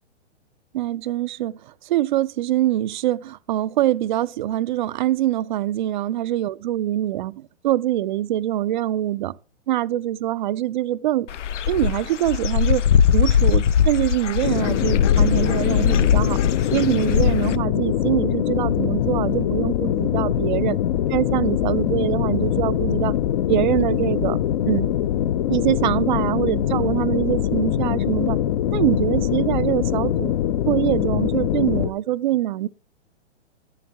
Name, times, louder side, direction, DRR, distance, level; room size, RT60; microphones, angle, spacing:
voice 1, 0.7-9.4 9.7-11.3 11.7-16.4 16.7-20.8 21.1-23.1 23.5-24.4 24.6-24.9 25.5-28.4 28.7-30.3 30.6-32.7, right 13 dB, 45° right, 0.4 m, -24 dB
Dog / Bird, 11.3-17.6, left 8 dB, 85° left, 0.6 m, -20 dB
sound 1, 14.4-31.9, left 11 dB, 40° left, 0.5 m, -23 dB
11.5 x 7.1 x 2.8 m
hypercardioid pair, 130°, 35 cm